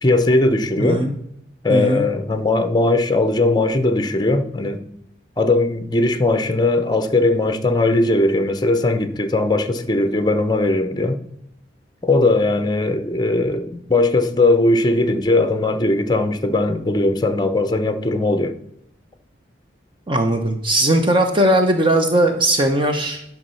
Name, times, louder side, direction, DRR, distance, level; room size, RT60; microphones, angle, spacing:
voice 1, 0.0-1.0 1.6-4.8 5.4-11.2 12.0-18.5, left 2 dB, 25° left, 0.8 m, -19 dB
voice 2, 0.8-1.1 1.7-2.1 20.1-23.2, right 1 dB, 25° right, 0.8 m, -18 dB
11.0 x 6.0 x 5.6 m
head